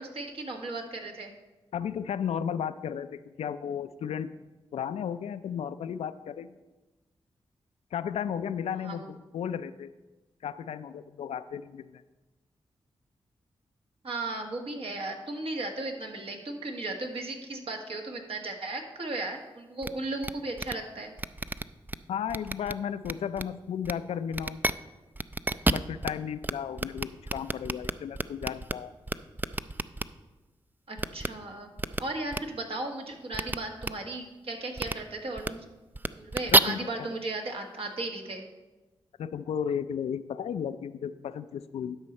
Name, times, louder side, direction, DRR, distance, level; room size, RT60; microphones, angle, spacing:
voice 1, 0.0-1.3 8.7-9.1 14.0-21.1 30.9-31.7 32.0-35.6 36.2-38.5, right 2 dB, 65° right, 2 dB, 1.6 m, -36 dB
voice 2, 1.7-4.3 4.7-6.6 7.9-9.9 10.4-12.0 22.1-24.6 25.7-28.9 36.5-37.1 39.2-42.0, left 8 dB, 80° left, 13 dB, 0.4 m, -34 dB
sound 1, 19.8-19.9 20.2-20.3 20.6-20.7 21.2-22.0 22.3-22.7 23.0-23.4 23.8-23.9 24.3-24.7 25.2-26.1 26.4-26.5 26.8-28.7 29.1-30.0 31.0-31.3 31.8-32.0 32.3-32.4 33.3-33.6 33.8-33.9 34.8-34.9 35.4-35.5 36.0-36.6, right 2 dB, 20° right, 0.4 m, -28 dB
12.0 x 5.4 x 4.3 m, 1.1 s
supercardioid pair, 45°, 10 cm